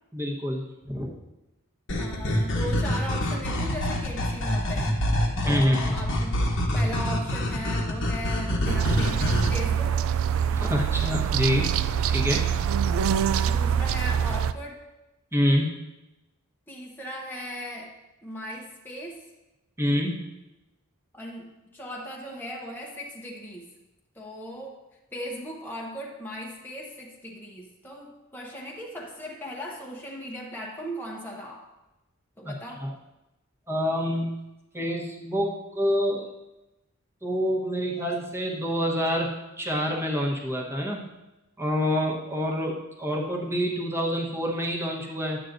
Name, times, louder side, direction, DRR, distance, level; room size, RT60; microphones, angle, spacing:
voice 1, 0.1-1.1 5.4-5.9 10.5-11.7 12.1-12.4 15.3-15.7 19.8-20.2 32.4-32.5 32.8-32.9 33.7-34.4 34.7-36.3 37.2-41.0 41.6-45.4, equal, 10° right, -2 dB, 1.1 m, -27 dB
sound 1, 1.9-9.5, left 1 dB, 60° left, 1.1 m, -26 dB
voice 2, 2.0-5.0 5.4-6.5 6.7-10.0 13.4-14.8 16.7-17.9 18.2-19.3 21.1-23.7 24.1-24.8 25.1-31.6 32.4-32.9, equal, 10° left, -3 dB, 0.8 m, -38 dB
sound 2, 8.7-14.5, right 8 dB, 65° right, 0.3 m, -25 dB
10.5 x 8.2 x 2.6 m, 0.98 s
head